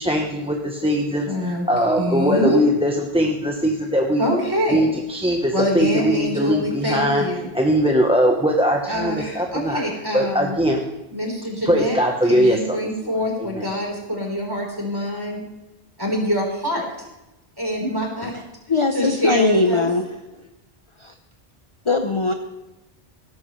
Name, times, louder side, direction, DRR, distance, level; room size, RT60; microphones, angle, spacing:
voice 1, 0.0-4.3 4.7-7.2 7.5-9.8 10.1-10.8 11.6-12.6 13.4-13.7, equal, 5° right, 1 dB, 0.9 m, -20 dB
voice 2, 1.3-1.6 2.0-2.6 4.2-4.9 5.5-7.5 8.8-10.6 11.1-12.0 12.3-15.4 16.0-16.8 17.6-18.3 18.9-19.9, equal, 20° right, -1 dB, 4.2 m, -25 dB
voice 3, 18.7-20.0 20.3-20.5 21.0-21.1 21.8-22.3, left 3 dB, 30° left, 5 dB, 0.8 m, -21 dB
16.5 x 13.5 x 3.2 m, 0.99 s
omnidirectional pair, 1.1 m